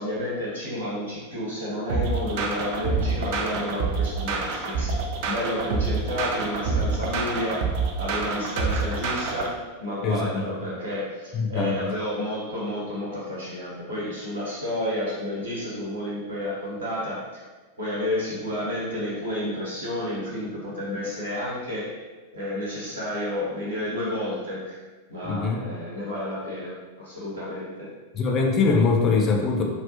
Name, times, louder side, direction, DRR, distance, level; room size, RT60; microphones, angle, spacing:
voice 1, 0.0-4.9 5.2-7.6 8.0-17.4 17.8-21.9 22.3-24.8 25.1-27.9, left 1 dB, 70° right, -7 dB, 0.9 m, -31 dB
sound 1, 1.9-9.5, right 4 dB, 50° right, 0.3 m, -27 dB
voice 2, 10.0-10.4 11.3-11.8 25.2-25.6 28.2-29.6, left 4 dB, 30° left, 1 dB, 0.3 m, -22 dB
2.3 x 2.1 x 2.8 m, 1.3 s
figure-of-eight pair, 90°, 0 cm